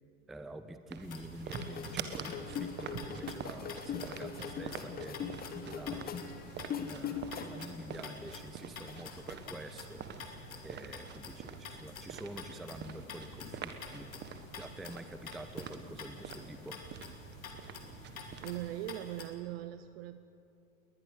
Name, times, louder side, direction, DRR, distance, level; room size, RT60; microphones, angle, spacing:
voice 1, 0.3-6.3 6.8-14.1 14.6-17.1, right 1 dB, ahead, 11 dB, 0.4 m, -48 dB
sound 1, 0.9-18.7, right 7 dB, 25° right, 1.4 m, -46 dB
sound 2, 1.0-19.3, left 4 dB, 70° left, 2.8 m, -49 dB
sound 3, 1.6-7.7 8.1-9.4, left 7 dB, 20° left, 1.3 m, -41 dB
voice 2, 18.4-20.2, right 14 dB, 45° right, 12 dB, 0.7 m, -40 dB
21.5 x 19.5 x 6.4 m, 2.9 s
figure-of-eight pair, 90°, 42 cm